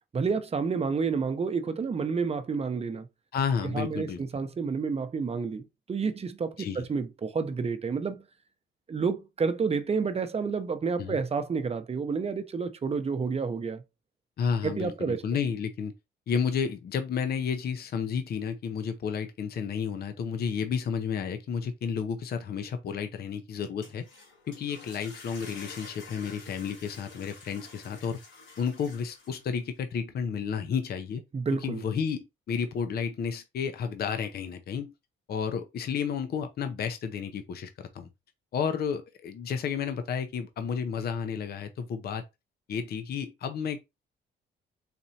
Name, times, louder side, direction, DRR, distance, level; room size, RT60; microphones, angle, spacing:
voice 1, 0.1-3.1 3.6-8.2 8.9-13.8 14.6-15.2 31.3-31.8, right 5 dB, 30° right, 0.7 m, -30 dB
voice 2, 3.3-4.2 6.6-6.9 11.0-11.2 14.4-15.9 16.3-24.0 24.5-28.2 28.6-31.2 31.6-34.9 35.3-38.1 38.5-42.2 42.7-43.8, left 6 dB, 55° left, 0.6 m, -31 dB
sound 1, 23.6-29.6, left 4 dB, 80° left, 2.4 m, -49 dB
4.2 x 3.1 x 2.7 m
cardioid pair, 90°, 20 cm